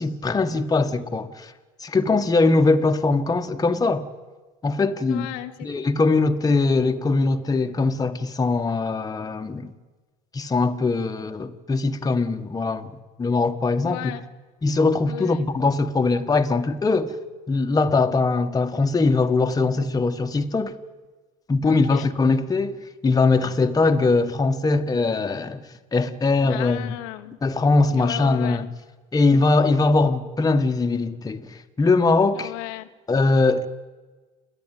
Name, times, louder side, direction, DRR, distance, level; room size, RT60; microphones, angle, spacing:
voice 1, 0.0-1.5 1.8-4.1 4.6-5.3 5.6-9.7 10.3-12.9 13.2-14.1 14.6-17.2 17.5-20.7 21.5-22.8 23.0-25.6 25.9-26.8 27.4-28.6 29.1-32.5 33.1-33.7, left 3 dB, 20° left, 1.5 m, -21 dB
voice 2, 5.1-5.7 13.8-14.2 15.0-15.5 21.6-22.1 26.5-27.4 27.9-28.7 32.3-32.9, left 16 dB, 80° left, 1.2 m, -34 dB
29.5 x 10.5 x 9.2 m
supercardioid pair, 90°, 17 cm